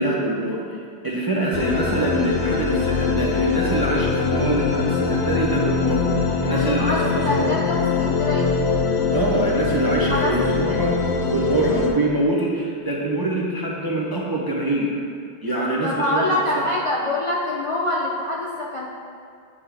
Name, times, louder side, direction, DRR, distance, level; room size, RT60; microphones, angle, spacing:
voice 1, 0.0-7.6 9.1-11.0 11.2-15.0 15.4-16.7, right 1 dB, 30° right, -4 dB, 0.4 m, -24 dB
sound 1, 1.5-11.9, left 5 dB, 75° left, 0.9 m, -22 dB
voice 2, 6.5-7.0 7.2-8.6 10.1-10.3 15.8-18.9, left 1 dB, 40° left, -5 dB, 0.5 m, -25 dB
8.6 x 3.4 x 3.3 m, 2.2 s
omnidirectional pair, 1.1 m